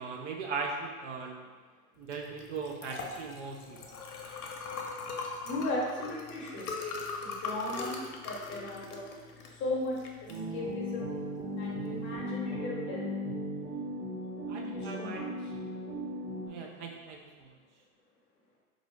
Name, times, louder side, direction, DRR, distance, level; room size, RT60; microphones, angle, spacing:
voice 1, 0.0-1.4 2.0-3.8 14.5-15.2 16.5-17.5, right 4 dB, 50° right, 1 dB, 0.5 m, -39 dB
Liquid, 2.0-12.2, left 4 dB, 70° left, 0.7 m, -41 dB
voice 2, 5.4-6.6 7.2-8.0 8.2-9.0 9.6-10.0 10.5-11.1 11.6-13.0 14.5-15.5, left 2 dB, 25° left, -4 dB, 0.8 m, -36 dB
sound 1, 10.3-16.5, equal, 15° right, 0.7 m, -37 dB
3.8 x 2.6 x 3.1 m, 1.4 s
figure-of-eight pair, 100°, 46 cm